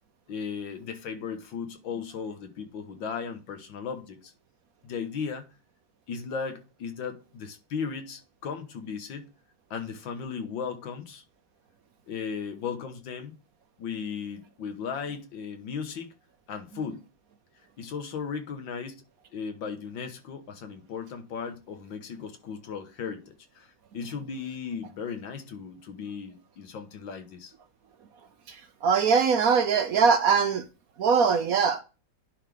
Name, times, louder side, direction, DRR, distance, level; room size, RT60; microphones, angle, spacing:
voice 1, 0.3-4.3 4.8-5.5 6.1-9.3 9.7-11.2 12.1-13.3 13.8-16.1 16.5-17.1 17.8-19.0 19.3-23.7 23.9-27.5, left 6 dB, 90° left, 1.9 m, -36 dB
voice 2, 28.8-30.6 31.0-31.8, right 6 dB, 65° right, 1.0 m, -21 dB
10.5 x 4.0 x 3.4 m
omnidirectional pair, 2.0 m